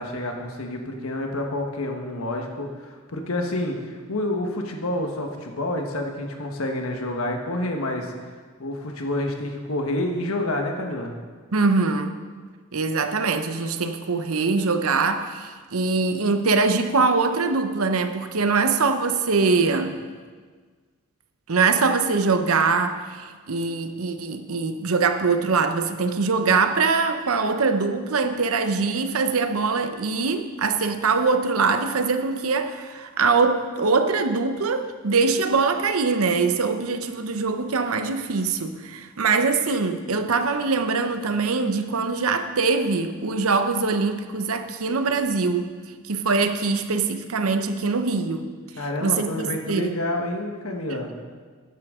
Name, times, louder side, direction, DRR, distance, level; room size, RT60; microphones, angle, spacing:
voice 1, 0.0-8.1 8.6-11.1 48.8-51.1, left 1 dB, 80° left, 3 dB, 1.3 m, -28 dB
voice 2, 11.5-12.1 12.7-20.0 21.5-45.7 46.1-48.4 49.0-49.9, right 4 dB, 85° right, 8 dB, 0.8 m, -23 dB
13.5 x 10.5 x 3.7 m, 1.5 s
head